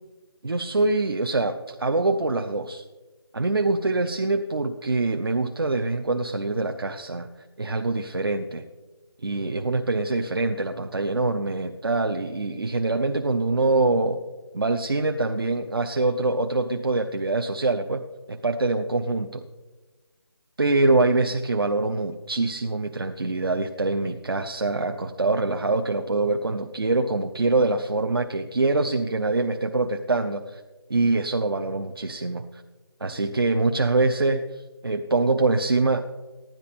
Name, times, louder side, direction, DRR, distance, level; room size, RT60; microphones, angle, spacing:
voice 1, 0.4-2.8 3.3-7.3 7.6-8.6 9.2-14.2 14.5-19.4 20.6-30.6 30.9-32.6 33.0-36.2, right 2 dB, 60° right, 5 dB, 0.7 m, -24 dB
15.0 x 10.5 x 4.2 m, 1.2 s
figure-of-eight pair, 175°, 14 cm